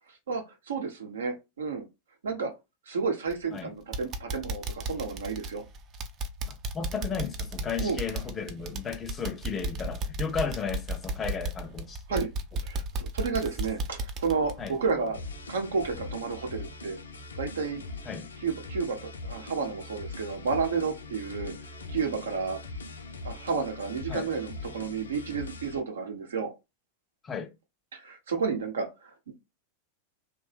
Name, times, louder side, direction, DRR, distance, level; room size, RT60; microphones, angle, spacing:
voice 1, 0.3-1.9 2.2-2.5 2.9-5.6 7.8-8.0 12.1-12.3 12.6-15.2 15.5-17.0 17.4-17.8 18.4-21.5 21.9-22.6 23.2-26.5 27.9-29.1, right 5 dB, 65° right, 0.7 m, -31 dB
sound 1, 3.3-3.6 3.9-15.5 15.8-16.0 16.4-16.5, right 2 dB, 30° right, 0.4 m, -35 dB
voice 2, 6.5-12.2 14.6-14.7 18.0-18.3 24.1-24.3 27.2-27.5, left 6 dB, 20° left, 0.6 m, -34 dB
sound 2, 15.1-25.8, left 3 dB, 70° left, 0.4 m, -41 dB
2.9 x 2.1 x 3.3 m
figure-of-eight pair, 90°, 0 cm